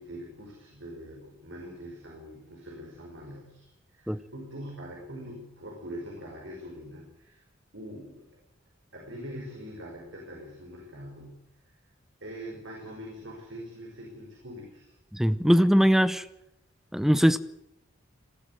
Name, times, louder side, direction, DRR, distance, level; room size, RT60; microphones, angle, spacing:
voice 1, 0.0-7.4 7.7-8.3 8.9-11.8 12.2-14.9 15.4-15.5, equal, 70° right, 5.3 m, -43 dB
voice 2, 15.1-16.3 16.9-17.4, equal, ahead, 0.7 m, -21 dB
20.0 x 13.5 x 9.5 m
head